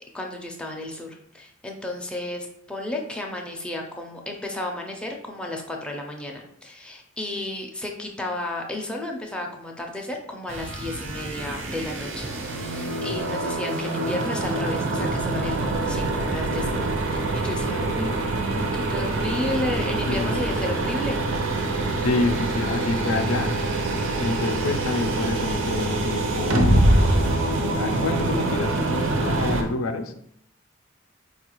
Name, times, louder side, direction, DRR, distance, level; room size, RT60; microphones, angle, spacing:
voice 1, 0.1-21.2, left 1 dB, 5° left, 0 dB, 0.4 m, -33 dB
sound 1, 10.5-29.6, right 2 dB, 70° right, 0.6 m, -25 dB
voice 2, 20.1-20.7 22.0-23.5 24.2-30.1, left 3 dB, 90° left, 7 dB, 0.4 m, -28 dB
4.3 x 2.3 x 2.9 m, 0.70 s
head